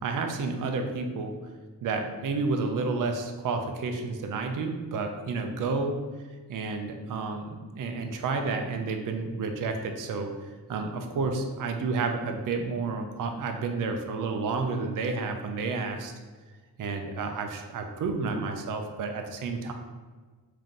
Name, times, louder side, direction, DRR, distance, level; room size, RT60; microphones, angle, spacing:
voice 1, 0.0-1.3 1.8-6.0 6.5-16.1 16.8-19.7, right 4 dB, 55° right, 5 dB, 0.5 m, -30 dB
3.6 x 2.8 x 3.7 m, 1.4 s
wide cardioid pair, 110°, 39 cm